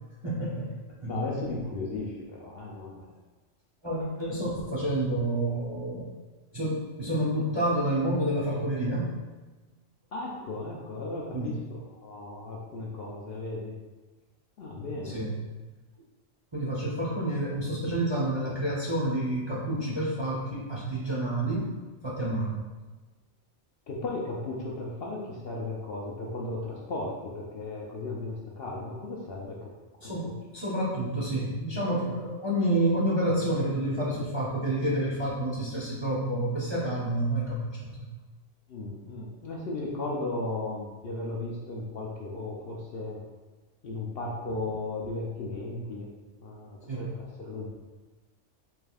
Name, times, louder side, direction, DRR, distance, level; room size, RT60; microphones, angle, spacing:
voice 1, 0.2-0.7 1.0-1.2 3.8-6.1 6.5-9.1 11.3-11.5 15.0-15.4 16.5-21.7 22.0-22.6 30.0-38.1 46.9-47.1, right 1 dB, 30° right, -6 dB, 0.6 m, -29 dB
voice 2, 1.1-3.1 10.1-13.7 14.6-15.2 23.9-29.7 30.0-30.3 38.7-43.2 43.8-46.1 46.4-47.7, left 2 dB, 60° left, -3 dB, 0.7 m, -35 dB
4.9 x 3.4 x 2.3 m, 1.2 s
omnidirectional pair, 1.4 m